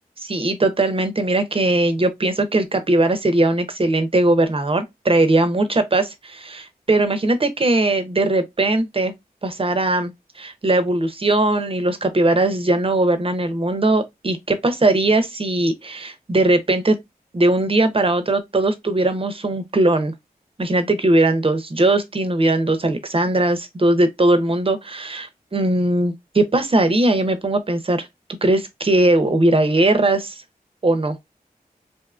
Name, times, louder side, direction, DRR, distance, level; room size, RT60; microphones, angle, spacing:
voice 1, 0.2-9.1 9.4-17.0 17.3-20.1 20.6-28.1 28.4-30.4 30.8-31.2, right 2 dB, 35° right, 0.6 m, -19 dB
2.6 x 2.4 x 2.3 m
cardioid pair, 45°, 16 cm